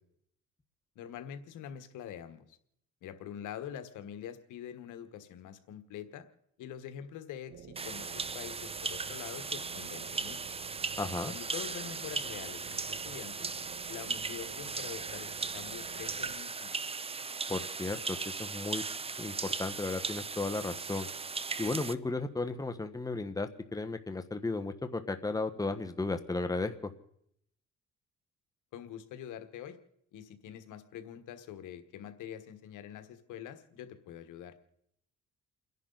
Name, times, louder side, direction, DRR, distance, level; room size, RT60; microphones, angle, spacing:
voice 1, 0.9-2.6 3.0-6.2 6.6-10.4 11.3-13.5 13.9-16.9 28.7-29.8 30.1-34.5, left 9 dB, 90° left, 9 dB, 1.4 m, -45 dB
sound 1, 7.5-16.3, right 9 dB, 65° right, 1.5 m, -51 dB
sound 2, 7.8-21.9, right 4 dB, 20° right, 0.6 m, -38 dB
voice 2, 11.0-11.3 17.5-18.8 19.2-21.1 21.6-26.7, left 3 dB, 10° left, 7 dB, 1.2 m, -34 dB
30.0 x 11.0 x 4.0 m, 0.74 s
cardioid pair, 90°, 30 cm